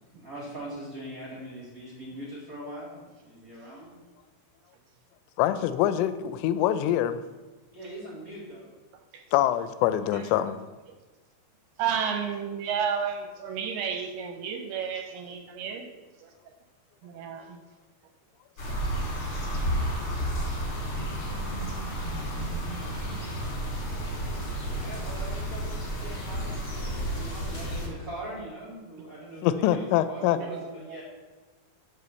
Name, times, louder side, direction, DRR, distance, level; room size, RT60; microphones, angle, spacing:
voice 1, 0.1-3.9 7.7-8.7 24.7-31.0, right 1 dB, 35° right, -6 dB, 1.4 m, -42 dB
voice 2, 5.4-7.2 9.3-10.6 29.4-30.4, left 12 dB, 85° left, 12 dB, 2.8 m, -24 dB
voice 3, 10.1-10.5 11.8-15.9 16.2-16.3 17.0-17.6 30.4-31.0, right 7 dB, 80° right, 4 dB, 2.4 m, -32 dB
sound 1, 18.6-27.9, right 1 dB, 35° left, 2.5 m, -31 dB
8.2 x 4.9 x 6.9 m, 1.2 s
omnidirectional pair, 5.0 m